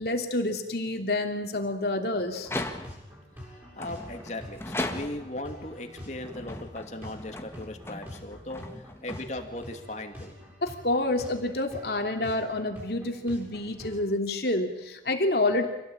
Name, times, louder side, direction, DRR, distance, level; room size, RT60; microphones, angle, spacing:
voice 1, 0.0-2.5 10.6-15.7, left 2 dB, 60° left, 4 dB, 3.1 m, -28 dB
sound 1, 2.4-3.2 3.8-5.4 6.1-9.7, left 1 dB, 15° left, 1.7 m, -38 dB
sound 2, 2.5-14.0, left 1 dB, 10° right, 7.2 m, -46 dB
voice 2, 3.4-10.5, left 1 dB, 40° left, 4 dB, 2.7 m, -38 dB
26.5 x 17.5 x 8.9 m, 0.98 s
head